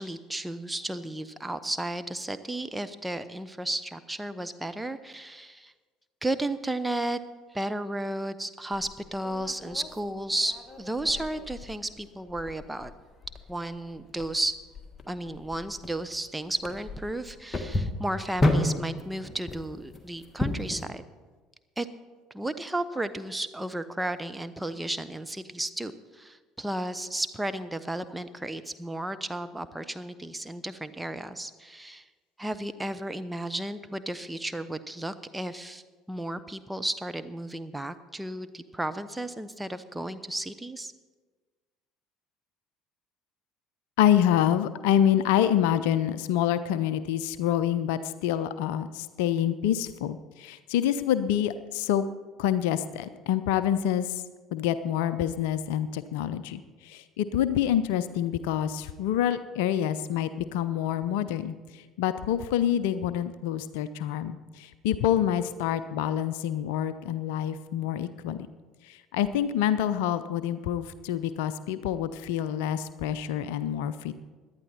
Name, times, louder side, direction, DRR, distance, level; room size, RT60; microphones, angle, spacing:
voice 1, 0.0-5.7 6.2-7.2 7.5-12.9 13.5-14.5 15.1-21.1 21.8-21.9 22.3-32.1 32.4-40.9, right 1 dB, 10° right, 11 dB, 0.8 m, -33 dB
sound 1, 8.7-20.8, left 1 dB, 20° left, 1.6 m, -33 dB
voice 2, 44.0-52.0 52.4-54.2 54.5-68.5 68.9-74.1, left 10 dB, 65° left, 14 dB, 0.5 m, -27 dB
17.5 x 11.0 x 4.4 m, 1.4 s
figure-of-eight pair, 60°, 0 cm